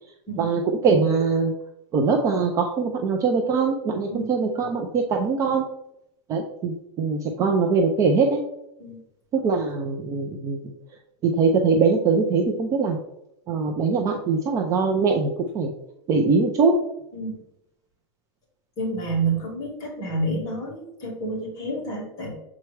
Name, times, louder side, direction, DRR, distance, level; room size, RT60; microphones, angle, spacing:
voice 1, 0.4-1.5 1.9-5.7 6.3-8.4 9.3-10.7 11.2-13.0 13.5-15.3 15.5-15.7 16.1-16.8, right 4 dB, 20° right, 2 dB, 0.4 m, -22 dB
voice 2, 18.8-22.4, right 2 dB, 25° left, -4 dB, 2.3 m, -29 dB
7.1 x 4.5 x 3.2 m, 0.82 s
supercardioid pair, 170°, 17 cm